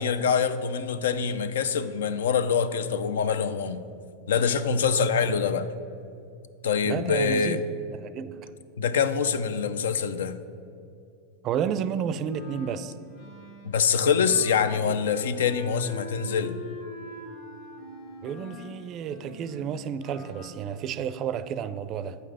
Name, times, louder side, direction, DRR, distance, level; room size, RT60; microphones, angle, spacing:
voice 1, 0.0-3.8 4.3-5.7 6.6-7.6 8.8-10.4 13.6-16.6, left 6 dB, 85° left, 0.4 m, -25 dB
voice 2, 6.8-7.6 7.9-8.4 11.4-12.9 18.2-22.2, right 8 dB, 40° right, 0.4 m, -31 dB
Wind instrument woodwind instrument, 12.2-20.6, left 2 dB, 65° left, 1.5 m, -44 dB
7.8 x 5.8 x 4.8 m
hypercardioid pair, 115°, 0 cm